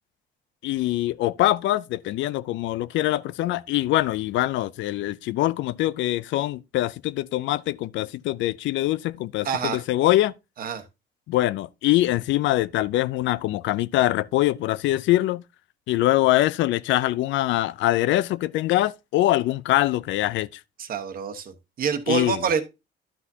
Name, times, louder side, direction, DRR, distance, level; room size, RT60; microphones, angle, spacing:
voice 1, 0.6-10.3 11.3-15.4 15.9-20.5 22.1-22.4, left 15 dB, 80° left, 0.4 m, -23 dB
voice 2, 9.4-9.8 10.6-10.8 20.8-21.5 21.8-22.6, right 6 dB, 50° right, 1.2 m, -26 dB
11.0 x 6.0 x 2.7 m
cardioid pair, 130°, 19 cm